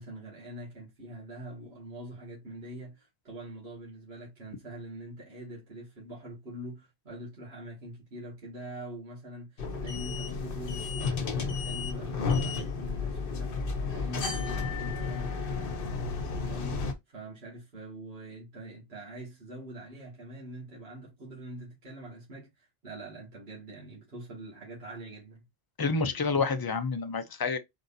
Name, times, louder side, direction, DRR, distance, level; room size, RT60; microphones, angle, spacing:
voice 1, 0.0-25.4, right 1 dB, 75° right, 2.4 m, -44 dB
sound 1, 9.6-16.9, left 4 dB, 60° left, 1.0 m, -32 dB
voice 2, 25.8-27.6, left 4 dB, 25° left, 0.5 m, -28 dB
4.8 x 4.0 x 2.7 m
omnidirectional pair, 1.1 m